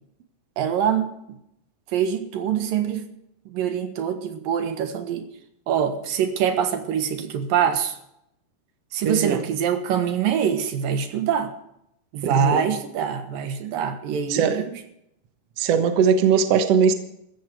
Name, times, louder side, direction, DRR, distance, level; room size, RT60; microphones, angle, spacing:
voice 1, 0.6-1.4 1.9-3.1 3.5-5.3 5.7-8.0 8.9-11.5 12.1-14.8, right 8 dB, 80° right, 7 dB, 3.1 m, -24 dB
voice 2, 9.0-9.4 12.2-12.6 14.3-14.6 15.6-16.9, right 6 dB, 55° right, 7 dB, 2.0 m, -20 dB
15.5 x 14.0 x 4.8 m, 0.77 s
omnidirectional pair, 4.0 m